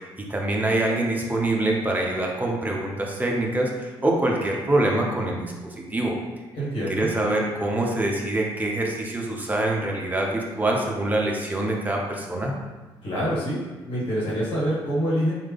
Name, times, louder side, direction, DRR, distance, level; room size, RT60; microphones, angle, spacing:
voice 1, 0.2-5.5 5.9-6.2 7.0-12.5, right 1 dB, 15° right, -1 dB, 0.7 m, -25 dB
voice 2, 6.5-7.1 13.0-13.6 13.9-15.3, equal, 50° left, -9 dB, 1.4 m, -25 dB
3.1 x 2.4 x 3.4 m, 1.2 s
figure-of-eight pair, 40°, 12 cm